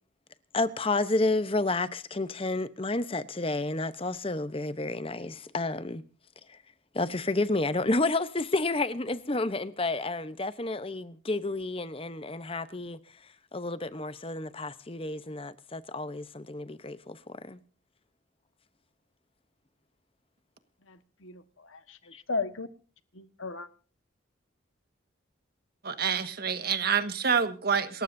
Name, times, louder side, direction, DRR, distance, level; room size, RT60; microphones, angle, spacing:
voice 1, 0.5-6.0 6.5-6.6 6.9-13.0 13.5-17.6 22.1-22.2, left 2 dB, 25° left, 0.9 m, -30 dB
voice 2, 20.9-22.0 22.3-22.7 23.1-23.7, left 3 dB, 85° left, 1.5 m, -35 dB
voice 3, 25.8-28.0, right 6 dB, 50° right, 1.6 m, -27 dB
28.0 x 14.5 x 2.7 m
head